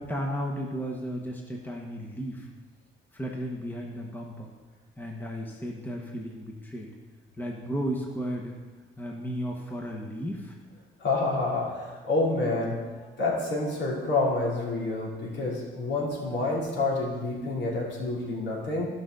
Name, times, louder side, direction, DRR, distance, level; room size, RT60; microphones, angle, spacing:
voice 1, 0.0-2.5 3.1-4.5 5.0-6.9 7.4-8.6 9.0-10.5 17.7-17.8, equal, 10° left, 0 dB, 1.3 m, -34 dB
voice 2, 11.0-18.9, left 2 dB, 65° left, -4 dB, 3.1 m, -28 dB
15.0 x 5.6 x 3.9 m, 1.3 s
cardioid pair, 90°, 20 cm